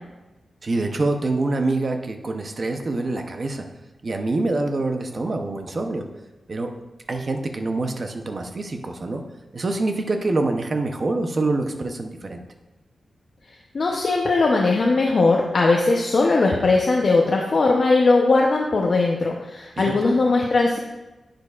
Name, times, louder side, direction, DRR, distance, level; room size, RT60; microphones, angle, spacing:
voice 1, 0.6-3.6 4.0-6.0 6.5-6.7 7.1-9.2 9.5-12.4 19.8-19.9, right 2 dB, 35° right, 5 dB, 0.7 m, -25 dB
voice 2, 13.7-20.8, left 3 dB, 45° left, -1 dB, 0.7 m, -19 dB
10.5 x 7.8 x 2.4 m, 1.1 s
wide cardioid pair, 170°, 0 cm